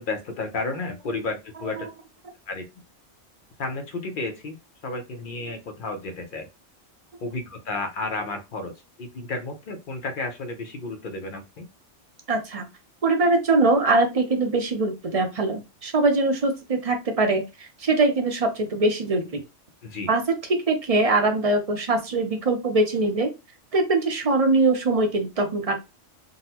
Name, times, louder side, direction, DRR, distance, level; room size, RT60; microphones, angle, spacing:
voice 1, 0.0-1.9 2.5-2.6 3.6-4.6 4.8-6.5 7.2-8.7 9.0-11.7 19.8-20.1, left 3 dB, 50° left, 6 dB, 0.7 m, -32 dB
voice 2, 12.3-12.6 13.0-19.4 20.1-20.2 20.7-23.3 23.7-25.8, right 2 dB, 45° right, 5 dB, 0.5 m, -22 dB
3.8 x 2.0 x 2.8 m, 0.25 s
omnidirectional pair, 1.2 m